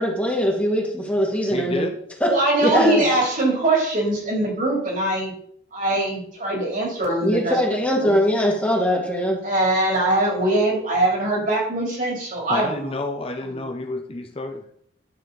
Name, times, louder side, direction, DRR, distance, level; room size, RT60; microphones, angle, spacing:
voice 1, 0.0-1.9 2.2-2.3 2.6-3.0 7.2-9.4, equal, 10° left, -1 dB, 2.0 m, -21 dB
voice 2, 1.5-2.0 9.3-9.4 12.5-14.7, left 2 dB, 30° left, 4 dB, 0.8 m, -30 dB
voice 3, 2.3-5.3 5.7-7.6 7.9-8.2 9.4-12.9 13.5-13.6, right 1 dB, 45° right, -1 dB, 3.3 m, -22 dB
11.5 x 7.1 x 4.0 m, 0.65 s
head